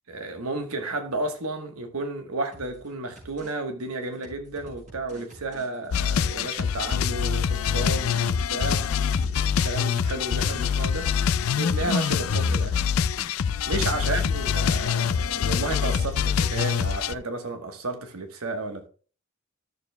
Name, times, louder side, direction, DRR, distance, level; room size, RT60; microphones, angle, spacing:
voice 1, 0.1-8.9 9.2-11.1 11.6-12.8 13.7-18.9, right 2 dB, 85° right, 1.2 m, -32 dB
sound 1, 2.5-2.9 3.2-3.5 3.8-6.3 6.6-7.0 7.2-9.3, equal, 35° right, 4.6 m, -47 dB
sound 2, 5.9-17.1, left 7 dB, 80° left, 0.4 m, -25 dB
13.5 x 6.8 x 2.2 m
head